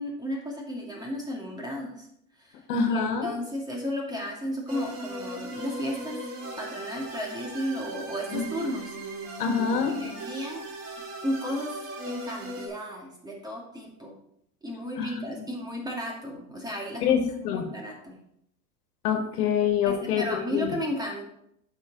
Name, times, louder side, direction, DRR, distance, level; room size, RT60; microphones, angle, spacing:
voice 1, 0.0-2.1 2.4-2.6 2.9-6.2 6.6-8.9 9.9-10.6 11.2-11.7 12.1-14.1 14.6-18.2 19.9-21.2, equal, 10° right, -1 dB, 2.0 m, -34 dB
voice 2, 2.7-3.3 8.3-8.5 9.4-10.0 15.0-15.4 17.0-17.7 19.0-20.7, left 7 dB, 90° left, 6 dB, 1.5 m, -26 dB
sound 1, 4.7-12.7, right 1 dB, 55° right, 2.5 m, -38 dB
9.0 x 5.8 x 3.9 m, 0.75 s
supercardioid pair, 125°, 45 cm